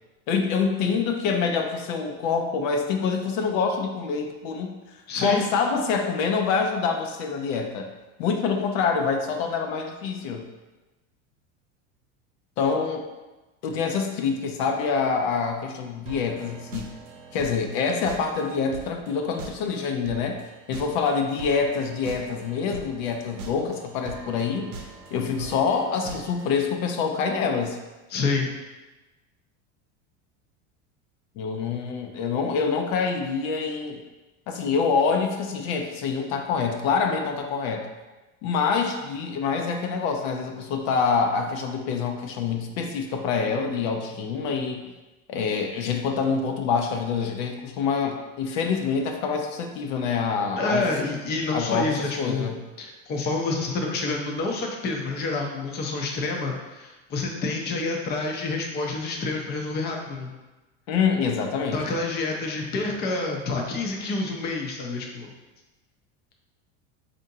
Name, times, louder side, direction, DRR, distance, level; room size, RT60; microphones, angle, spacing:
voice 1, 0.3-4.8 5.2-7.9 8.2-10.4 12.6-13.0 13.6-16.9 17.3-27.8 31.4-34.0 34.5-37.9 38.4-44.9 45.3-50.9 51.5-52.6 60.9-61.8, left 5 dB, 70° left, 4 dB, 0.6 m, -26 dB
voice 2, 5.1-5.4 28.1-28.5 50.6-60.3 61.7-65.3, left 3 dB, 25° left, 1 dB, 0.5 m, -28 dB
sound 1, 16.1-26.7, right 4 dB, 75° right, 0.7 m, -42 dB
4.3 x 2.6 x 2.7 m, 1.1 s
supercardioid pair, 120°, 40 cm